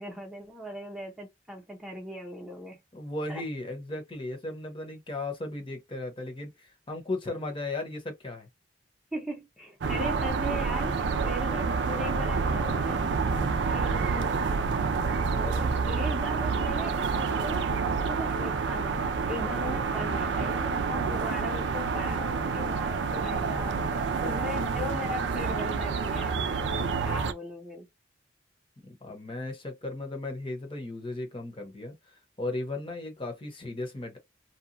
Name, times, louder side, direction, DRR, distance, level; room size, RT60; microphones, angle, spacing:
voice 1, 0.0-2.8 3.3-3.4 9.1-13.1 13.6-14.5 15.4-27.9, left 1 dB, 5° right, 0.7 m, -39 dB
voice 2, 2.9-8.5 15.4-15.8 28.8-34.2, left 2 dB, 30° left, 0.8 m, -36 dB
sound 1, 9.8-27.3, right 5 dB, 65° right, 0.4 m, -28 dB
2.8 x 2.2 x 2.5 m
head